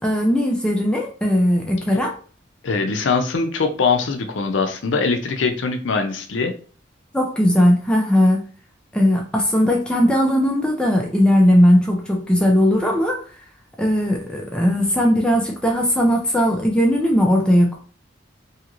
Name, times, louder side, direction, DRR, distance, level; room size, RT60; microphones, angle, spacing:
voice 1, 0.0-2.1 7.1-8.4 8.9-13.2 13.8-17.8, equal, 5° left, 0 dB, 0.4 m, -18 dB
voice 2, 2.6-6.5, left 4 dB, 75° left, 6 dB, 0.5 m, -22 dB
2.8 x 2.5 x 2.9 m, 0.41 s
head